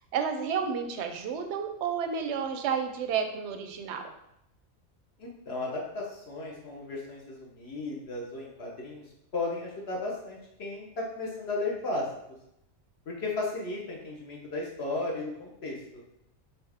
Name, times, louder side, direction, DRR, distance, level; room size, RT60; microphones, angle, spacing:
voice 1, 0.1-4.0, right 6 dB, 65° right, 6 dB, 0.8 m, -31 dB
voice 2, 5.2-9.0 9.3-12.1 13.1-16.0, left 2 dB, 55° left, -2 dB, 1.0 m, -35 dB
4.2 x 3.4 x 3.5 m, 0.81 s
omnidirectional pair, 1.4 m